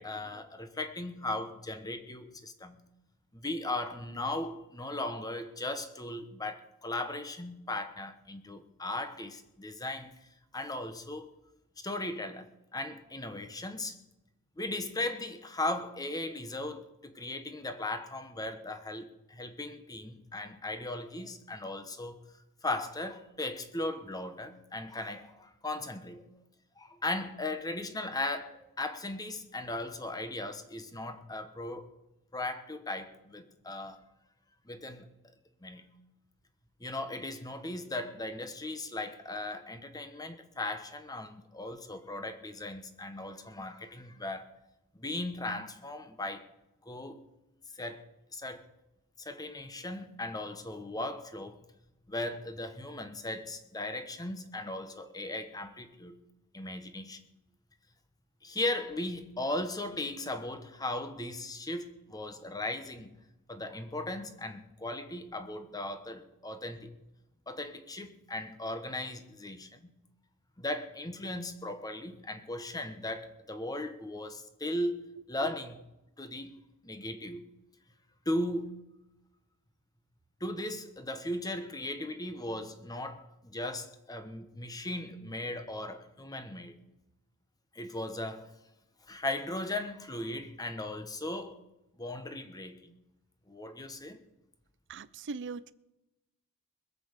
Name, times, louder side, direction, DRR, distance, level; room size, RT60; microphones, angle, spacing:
voice 1, 0.0-2.8 3.3-10.1 10.5-11.3 11.8-14.0 14.6-22.2 22.6-26.2 26.8-31.9 32.3-34.0 34.7-35.1 35.6-35.9 36.8-44.5 45.0-46.4 46.8-47.2 47.8-48.0 48.3-48.6 49.2-51.6 52.1-56.2 56.5-57.2 58.4-63.1 63.5-66.9 67.5-69.9 70.6-75.8 76.2-76.5 76.8-77.4 78.2-78.8 80.4-86.7 87.7-88.5 89.1-91.6 92.0-92.9 93.5-94.2, left 2 dB, 15° left, 1.2 m, -37 dB
voice 2, 94.9-95.7, right 4 dB, 55° right, 0.6 m, -40 dB
21.0 x 7.8 x 6.6 m
head